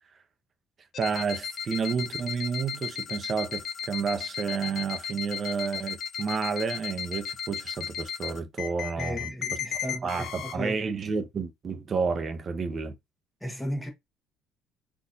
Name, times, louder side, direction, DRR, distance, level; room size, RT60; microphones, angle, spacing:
sound 1, 0.9-10.5, left 8 dB, 55° left, 0.7 m, -35 dB
voice 1, 1.0-9.3 10.0-13.0, right 5 dB, 40° right, 0.7 m, -30 dB
voice 2, 9.0-10.8 13.4-13.9, equal, 5° left, 1.1 m, -35 dB
4.1 x 2.6 x 2.6 m
cardioid pair, 95°, 0 cm